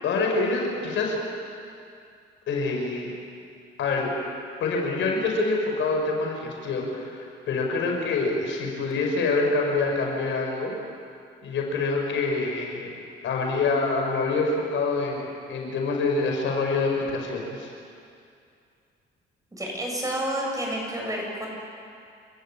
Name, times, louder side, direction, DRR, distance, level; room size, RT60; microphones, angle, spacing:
voice 1, 0.0-1.2 2.5-3.1 3.8-4.1 4.6-10.7 11.4-12.9 13.2-17.7, left 3 dB, 75° left, 0 dB, 5.5 m, -26 dB
voice 2, 19.5-21.5, right 1 dB, 15° right, -1 dB, 7.7 m, -29 dB
29.5 x 14.0 x 8.7 m, 2.4 s
cardioid pair, 90°, 20 cm